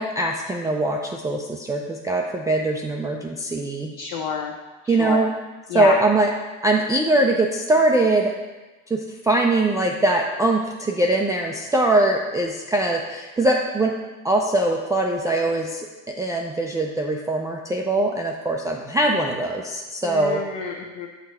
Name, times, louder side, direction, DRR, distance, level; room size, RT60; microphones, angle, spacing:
voice 1, 0.0-3.9 4.9-5.3 5.7-6.3 6.6-8.3 8.9-13.9 14.2-20.4, right 2 dB, 10° right, 0 dB, 0.3 m, -22 dB
voice 2, 4.0-4.5 4.8-5.3 5.7-5.9 20.1-21.1, left 6 dB, 55° left, -1 dB, 0.9 m, -28 dB
6.1 x 3.2 x 5.5 m, 1.2 s
supercardioid pair, 90°, 40 cm